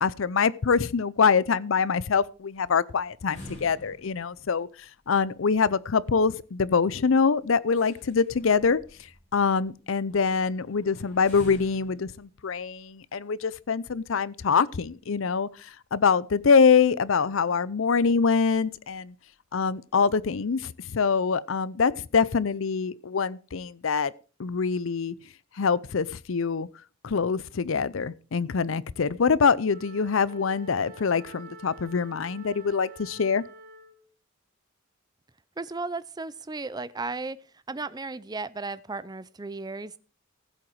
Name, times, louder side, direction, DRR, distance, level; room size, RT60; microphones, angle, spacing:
voice 1, 0.0-19.1 19.5-24.1 24.4-25.1 25.5-26.7 27.0-33.4, left 5 dB, 75° left, 0.6 m, -24 dB
sound 1, 2.3-14.5 14.9-15.0 15.3-15.5 16.5-17.1 17.4-17.5 17.8-17.9 18.6-18.7 18.9-19.2 19.6-20.4, left 1 dB, 35° left, 6.2 m, -50 dB
Wind instrument woodwind instrument, 29.7-34.1, right 2 dB, 45° right, 2.5 m, -47 dB
voice 2, 35.6-37.4 37.7-40.0, right 3 dB, 20° right, 0.5 m, -35 dB
15.0 x 7.8 x 4.7 m
head